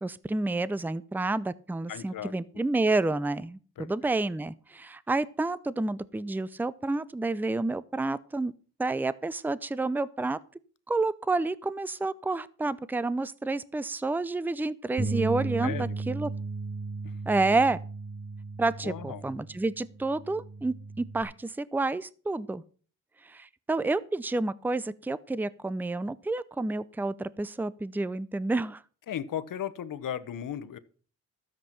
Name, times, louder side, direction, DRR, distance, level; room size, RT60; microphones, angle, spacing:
voice 1, 0.0-8.5 8.8-10.4 10.9-16.3 17.3-17.8 18.6-22.6 23.2-28.8, right 2 dB, 5° right, 18 dB, 0.5 m, -29 dB
voice 2, 1.9-2.3 3.8-3.9 15.6-16.0 17.0-17.1 18.8-19.3 29.1-30.8, left 9 dB, 80° left, 15 dB, 0.9 m, -36 dB
Bass guitar, 15.0-21.2, right 3 dB, 40° right, 2.5 m, -35 dB
13.0 x 7.6 x 5.9 m, 0.41 s
cardioid pair, 95°, 32 cm